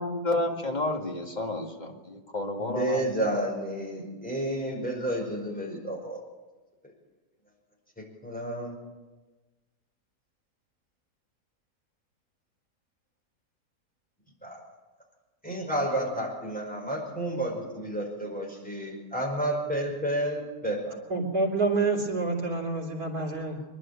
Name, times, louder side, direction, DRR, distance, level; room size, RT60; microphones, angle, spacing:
voice 1, 0.0-3.1, left 2 dB, 25° left, 2 dB, 2.3 m, -31 dB
voice 2, 2.6-6.2 8.2-8.8 14.4-14.6 15.4-20.9, right 1 dB, 5° left, 0 dB, 5.0 m, -31 dB
voice 3, 21.1-23.7, right 3 dB, 60° right, 0 dB, 4.0 m, -28 dB
26.0 x 11.0 x 8.9 m, 1.2 s
omnidirectional pair, 1.8 m